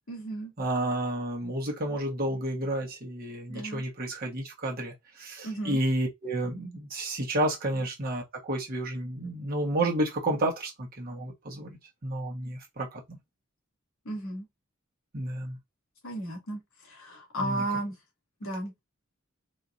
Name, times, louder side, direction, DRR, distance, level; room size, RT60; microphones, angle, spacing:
voice 1, 0.1-0.5 3.5-3.8 5.4-5.8 14.0-14.5 16.0-17.9 18.4-18.7, right 1 dB, 80° left, 2.5 m, -34 dB
voice 2, 0.6-13.2 15.1-15.6 17.4-17.6, right 1 dB, 45° right, 1.3 m, -31 dB
4.2 x 2.8 x 2.6 m
head